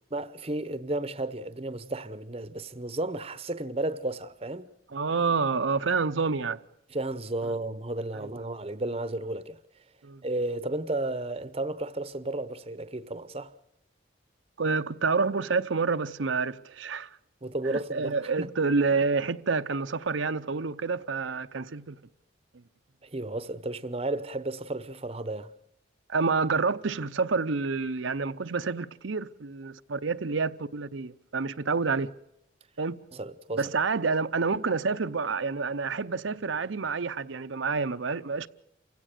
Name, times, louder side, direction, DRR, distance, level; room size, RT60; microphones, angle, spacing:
voice 1, 0.1-4.7 6.9-9.6 10.2-13.5 17.4-18.5 23.0-25.5 33.1-33.7, right 2 dB, 30° right, 0.8 m, -33 dB
voice 2, 4.9-6.6 8.2-8.3 10.0-10.2 14.6-17.1 17.7-21.9 26.1-32.1 32.8-33.0 33.6-38.5, right 4 dB, 80° right, 0.7 m, -28 dB
28.5 x 16.5 x 6.7 m
head